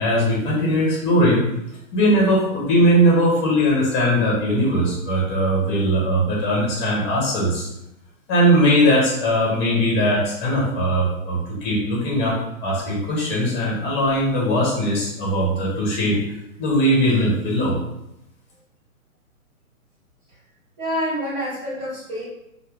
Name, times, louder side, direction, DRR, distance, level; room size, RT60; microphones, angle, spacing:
voice 1, 0.0-1.4 1.9-7.7 8.3-16.2 16.6-17.8, equal, 15° left, -4 dB, 0.7 m, -20 dB
voice 2, 20.8-22.2, equal, 10° right, -13 dB, 1.4 m, -27 dB
2.8 x 2.2 x 3.5 m, 0.83 s
hypercardioid pair, 140°, 43 cm